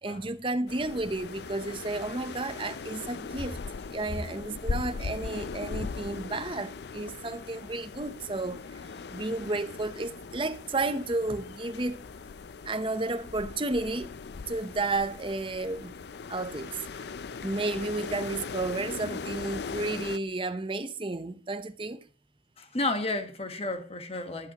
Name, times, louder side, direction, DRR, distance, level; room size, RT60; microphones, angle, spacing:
voice 1, 0.0-3.6 3.9-8.6 9.1-12.0 12.6-14.1 14.5-15.9 16.3-16.8 17.4-22.0, right 2 dB, 25° right, 0.8 m, -32 dB
sound 1, 0.7-20.2, left 4 dB, 60° left, 0.4 m, -39 dB
voice 2, 22.6-24.5, left 2 dB, 30° left, 1.3 m, -32 dB
22.0 x 8.2 x 3.0 m
head